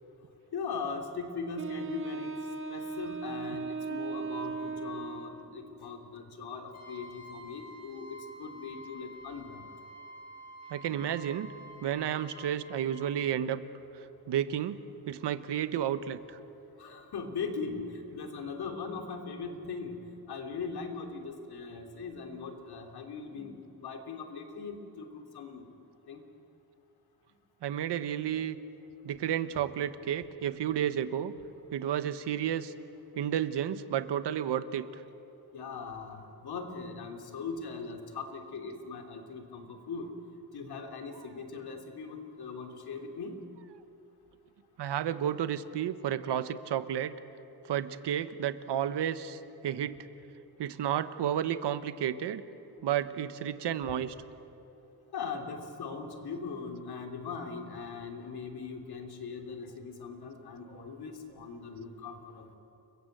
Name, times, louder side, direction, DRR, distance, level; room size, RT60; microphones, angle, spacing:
voice 1, 0.5-2.3 2.7-9.7 10.8-11.1 16.8-20.0 20.3-25.7 26.1-26.2 35.5-40.1 40.5-43.4 55.1-62.6, left 5 dB, 65° left, 4 dB, 3.1 m, -40 dB
Wind instrument woodwind instrument, 1.6-5.7, right 4 dB, 30° right, 1.3 m, -37 dB
Trumpet, 6.7-13.1, equal, 40° left, 4.8 m, -49 dB
voice 2, 10.7-11.5 11.8-13.6 14.3-14.8 15.1-16.4 27.6-28.6 29.0-31.3 31.7-32.7 33.1-34.8 44.8-47.2 47.7-50.1 50.6-52.4 52.8-54.1 60.8-61.0, right 10 dB, 90° right, 12 dB, 1.2 m, -31 dB
29.5 x 22.0 x 8.0 m, 3.0 s
wide cardioid pair, 155°, 41 cm